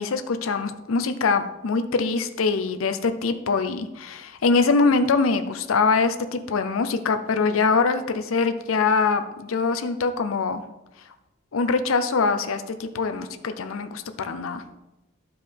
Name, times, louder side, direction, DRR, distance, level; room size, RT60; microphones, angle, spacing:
voice 1, 0.0-10.6 11.5-14.6, left 4 dB, 85° left, 9 dB, 0.5 m, -23 dB
12.0 x 4.6 x 3.5 m, 0.97 s
head